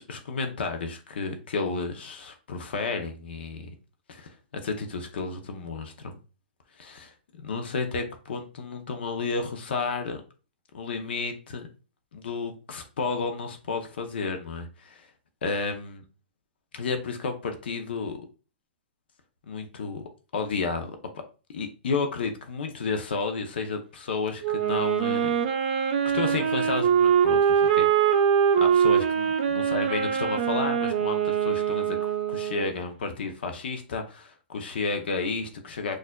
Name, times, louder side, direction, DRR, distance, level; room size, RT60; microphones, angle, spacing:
voice 1, 0.0-3.7 4.1-6.2 6.8-10.2 10.7-11.7 12.1-15.1 15.4-16.0 16.7-18.2 19.5-20.9 21.5-25.3 26.1-27.9 28.6-36.0, left 4 dB, 75° left, 0.7 m, -32 dB
Wind instrument woodwind instrument, 24.4-32.7, right 8 dB, 50° right, 0.5 m, -23 dB
4.2 x 2.5 x 2.2 m
hypercardioid pair, 155°, 6 cm